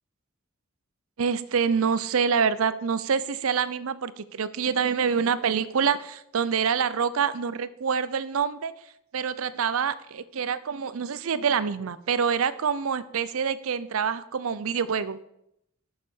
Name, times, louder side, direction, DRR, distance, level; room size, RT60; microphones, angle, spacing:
voice 1, 1.2-8.7 9.1-15.2, right 6 dB, 70° right, 16 dB, 0.5 m, -26 dB
6.9 x 6.7 x 6.2 m, 0.79 s
head